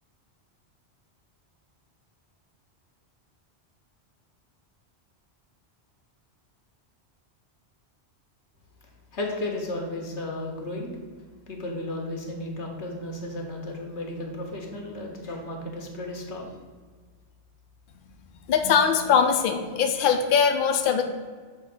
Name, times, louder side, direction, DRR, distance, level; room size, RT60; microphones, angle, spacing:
voice 1, 9.1-11.0 11.5-16.5, left 1 dB, 90° left, 2 dB, 1.5 m, -34 dB
voice 2, 18.5-21.0, left 7 dB, 60° left, 5 dB, 0.7 m, -21 dB
6.5 x 3.0 x 5.9 m, 1.5 s
omnidirectional pair, 1.1 m